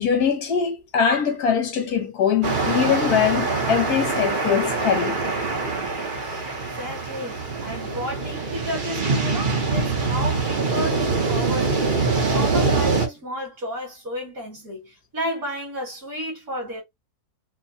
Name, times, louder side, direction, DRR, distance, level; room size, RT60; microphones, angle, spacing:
voice 1, 0.0-5.2, left 7 dB, 80° left, 1.5 m, -22 dB
sound 1, 2.4-13.1, right 4 dB, 40° right, 0.9 m, -24 dB
voice 2, 6.8-16.8, equal, 65° right, 2.4 m, -32 dB
4.5 x 2.2 x 2.7 m
omnidirectional pair, 1.6 m